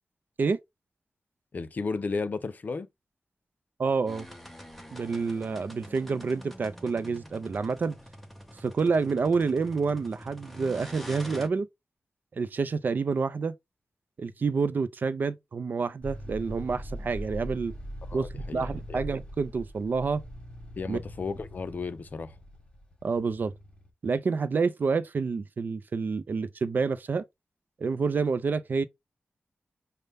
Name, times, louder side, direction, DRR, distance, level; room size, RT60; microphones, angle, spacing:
voice 1, 1.5-2.9 18.1-19.0 20.8-22.4, left 4 dB, 50° left, 0.4 m, -34 dB
voice 2, 3.8-4.3 4.9-8.0 8.6-11.7 12.3-13.5 14.2-17.7 18.1-20.2 20.9-21.0 23.0-23.5 24.0-27.2 27.8-28.8, right 4 dB, 55° right, 0.4 m, -28 dB
sound 1, 4.1-11.5, equal, 5° left, 0.6 m, -45 dB
sound 2, 16.0-23.9, equal, 25° left, 1.1 m, -41 dB
5.3 x 2.1 x 3.3 m
wide cardioid pair, 130°, 4 cm